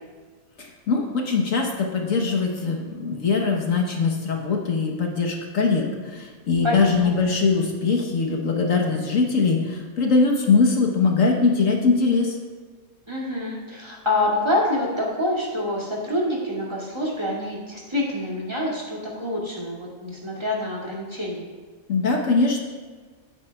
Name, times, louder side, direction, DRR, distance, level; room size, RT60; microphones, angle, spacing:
voice 1, 0.6-12.4 21.9-22.6, left 4 dB, 65° left, 1 dB, 1.5 m, -22 dB
voice 2, 6.6-7.1 13.1-21.5, left 1 dB, 20° right, -5 dB, 2.4 m, -26 dB
17.0 x 8.7 x 2.4 m, 1.5 s
omnidirectional pair, 1.5 m